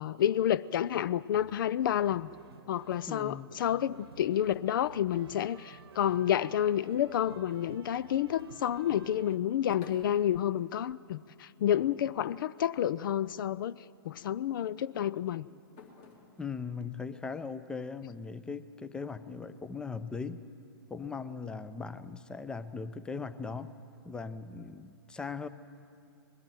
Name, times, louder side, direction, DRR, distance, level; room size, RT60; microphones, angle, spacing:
voice 1, 0.0-2.3 2.7-15.5, left 10 dB, 60° left, 0.4 m, -30 dB
sound 1, 1.3-9.4, right 6 dB, 80° right, 1.0 m, -53 dB
voice 2, 3.1-3.5 16.4-20.4 20.9-23.7 24.0-25.5, left 5 dB, 5° left, 0.6 m, -39 dB
sound 2, 9.4-11.3 11.7-12.3 13.4-13.7 14.9-18.1, left 4 dB, 35° left, 2.9 m, -57 dB
21.0 x 14.0 x 9.1 m
hypercardioid pair, 125°, 13 cm